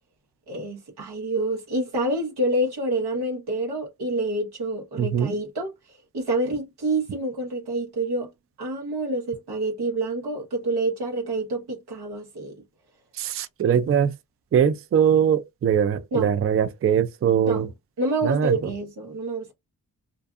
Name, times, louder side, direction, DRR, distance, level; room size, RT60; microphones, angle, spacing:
voice 1, 0.5-5.7 6.1-8.3 8.6-12.6 16.1-16.4 17.5-17.6 18.0-19.5, right 2 dB, 90° right, 1.1 m, -27 dB
voice 2, 5.0-5.3 13.1-14.1 14.5-17.7 18.2-18.6, right 8 dB, 40° right, 0.4 m, -21 dB
2.5 x 2.5 x 2.3 m
cardioid pair, 50°, 38 cm